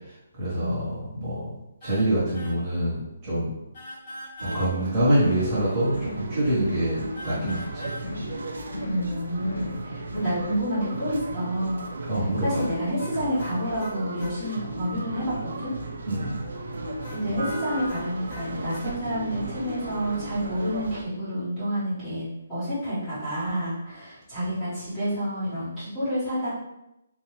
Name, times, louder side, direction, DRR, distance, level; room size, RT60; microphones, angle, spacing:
voice 1, 0.4-1.4 1.8-3.5 4.4-7.9 12.1-12.6 16.1-16.3, right 1 dB, 15° right, -11 dB, 1.3 m, -25 dB
sound 1, 1.8-2.1 2.3-2.6 3.7-4.7 7.2-8.1 12.5-14.4 17.0-18.9, equal, 30° left, 1.0 m, -41 dB
sound 2, 4.4-21.0, right 2 dB, 70° right, 0.6 m, -35 dB
sound 3, 5.2-5.6 5.9-6.3 6.6-7.0 7.3-7.7 8.0-8.4 8.7-9.1 9.4-9.8 10.1-10.5, left 2 dB, 90° left, 0.6 m, -37 dB
voice 2, 8.8-11.8 12.1-15.7 17.1-26.5, equal, 10° left, -13 dB, 1.4 m, -29 dB
4.0 x 2.7 x 3.1 m, 0.87 s
hypercardioid pair, 180°, 0 cm